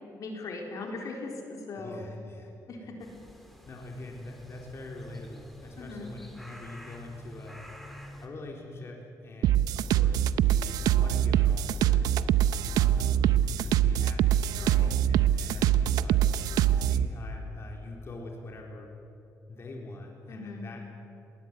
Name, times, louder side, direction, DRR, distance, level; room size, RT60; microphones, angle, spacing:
voice 1, 0.2-2.0 2.7-2.9 5.8-6.1 14.6-15.0 20.3-20.7, left 3 dB, 60° left, 2 dB, 4.0 m, -39 dB
voice 2, 1.8-2.5 3.6-7.6 8.2-12.2 12.6-16.2 16.6-18.9 19.5-20.8, left 2 dB, 40° left, 0 dB, 3.7 m, -44 dB
sound 1, 3.0-8.3, equal, ahead, 3.4 m, -48 dB
sound 2, 9.4-17.0, right 11 dB, 85° right, 0.7 m, -24 dB
19.5 x 19.5 x 9.2 m, 2.7 s
cardioid pair, 90°, 6 cm